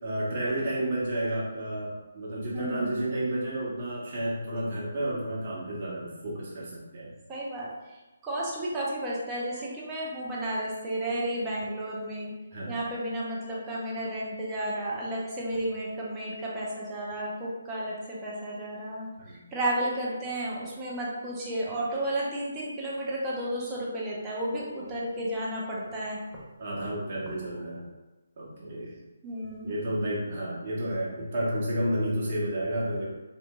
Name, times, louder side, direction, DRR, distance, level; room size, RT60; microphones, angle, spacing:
voice 1, 0.0-7.1 12.5-12.7 19.2-19.4 26.6-27.9 28.4-28.9 29.6-33.0, right 1 dB, 40° right, -6 dB, 0.9 m, -31 dB
voice 2, 2.5-3.1 7.3-8.0 8.2-12.3 12.7-26.2 29.2-29.8, right 1 dB, 15° right, -6 dB, 0.6 m, -32 dB
2.8 x 2.6 x 2.2 m, 1.1 s
figure-of-eight pair, 145°, 0 cm